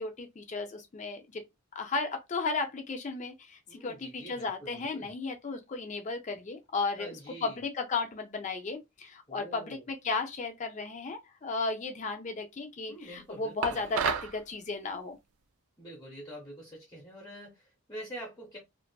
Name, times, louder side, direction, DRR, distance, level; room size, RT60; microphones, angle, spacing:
voice 1, 0.0-1.4 1.7-7.2 7.4-15.2, left 4 dB, 35° left, 0.4 m, -34 dB
voice 2, 3.7-5.1 7.0-7.6 9.3-9.9 12.9-13.8 15.8-18.6, right 1 dB, 15° left, 0.8 m, -46 dB
sound 1, 13.6-14.4, right 7 dB, 80° right, 0.3 m, -30 dB
2.5 x 2.3 x 2.2 m
head